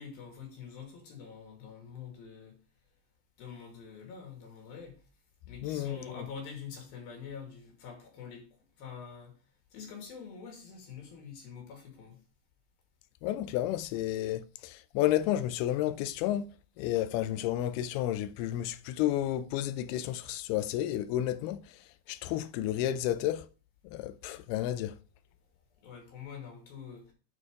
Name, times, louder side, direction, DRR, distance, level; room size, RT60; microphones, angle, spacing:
voice 1, 0.0-2.6 3.4-5.0 5.5-8.5 8.8-9.3 9.7-12.2 25.8-27.1, left 6 dB, 70° left, 4.1 m, -45 dB
voice 2, 5.6-6.3 13.2-16.5 16.8-21.8 22.1-23.5 23.8-25.0, left 13 dB, 85° left, 2.6 m, -31 dB
8.5 x 4.8 x 4.8 m
omnidirectional pair, 4.4 m